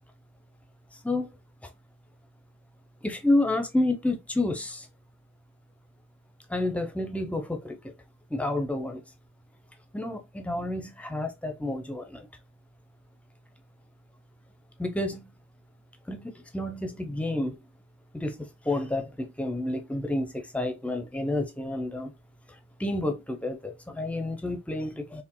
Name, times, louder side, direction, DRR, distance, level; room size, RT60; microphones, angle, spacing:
voice 1, 3.0-4.9 6.5-7.9 8.3-9.0 9.9-12.3 14.8-15.3 16.1-17.6 18.1-22.1 22.8-25.2, left 2 dB, 5° left, 0.6 m, -30 dB
4.7 x 3.2 x 2.2 m
head